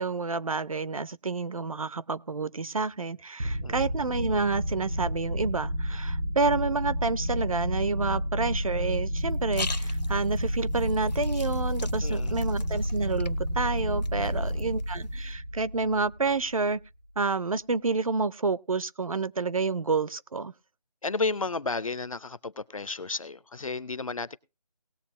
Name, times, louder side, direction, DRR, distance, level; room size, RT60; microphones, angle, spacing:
voice 1, 0.0-16.8 17.2-20.5, right 4 dB, 55° right, 0.5 m, -29 dB
sound 1, 3.4-16.7, equal, 90° right, 3.5 m, -30 dB
sound 2, 9.2-15.3, left 4 dB, 85° left, 0.8 m, -43 dB
voice 2, 12.0-12.4 14.4-14.7 21.0-24.4, left 3 dB, 55° left, 0.5 m, -33 dB
19.0 x 7.2 x 3.0 m
figure-of-eight pair, 170°, 21 cm